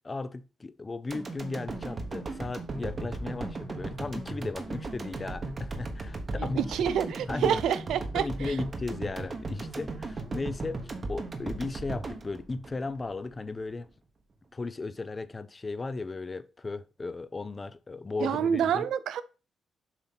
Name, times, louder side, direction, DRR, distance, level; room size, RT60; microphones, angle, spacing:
voice 1, 0.0-6.7 7.3-7.6 7.9-13.9 14.5-18.9, left 3 dB, 25° left, 0.4 m, -36 dB
sound 1, 1.1-13.3 13.7-13.8, right 3 dB, 35° right, 1.0 m, -37 dB
voice 2, 6.6-8.5 18.2-19.2, right 8 dB, 85° right, 0.5 m, -28 dB
6.9 x 2.9 x 5.8 m
cardioid pair, 120°, 0 cm